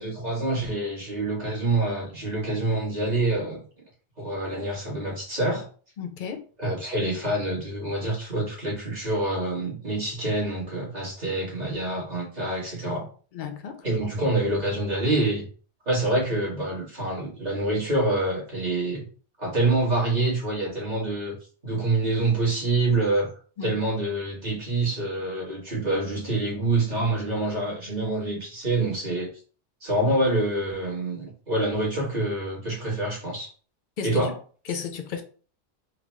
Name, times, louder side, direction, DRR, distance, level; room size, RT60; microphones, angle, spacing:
voice 1, 0.0-3.6 4.2-5.6 6.6-13.1 13.8-15.5 15.8-19.1 19.4-21.4 21.6-23.3 23.6-29.3 29.8-33.5 34.0-34.3, right 2 dB, 40° right, 1.5 m, -26 dB
voice 2, 6.0-6.4 13.3-13.8 23.6-23.8 34.0-34.3 34.7-35.2, left 7 dB, 60° left, 0.6 m, -33 dB
3.7 x 2.2 x 3.1 m
omnidirectional pair, 1.1 m